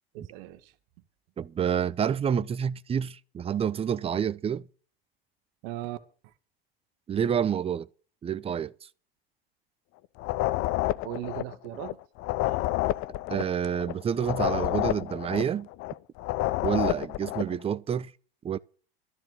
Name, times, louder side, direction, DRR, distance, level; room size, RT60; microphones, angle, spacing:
voice 1, 0.1-0.7 5.6-6.0 6.2-6.3 11.0-12.0 12.5-12.6, right 14 dB, 50° right, 1.6 m, -38 dB
voice 2, 1.4-4.6 7.1-7.9 8.2-8.7 13.3-15.7 16.6-18.1 18.4-18.6, right 8 dB, 20° right, 0.7 m, -28 dB
sound 1, 10.2-17.5, left 17 dB, 45° left, 0.8 m, -29 dB
13.5 x 7.5 x 7.5 m
hypercardioid pair, 85°, 30 cm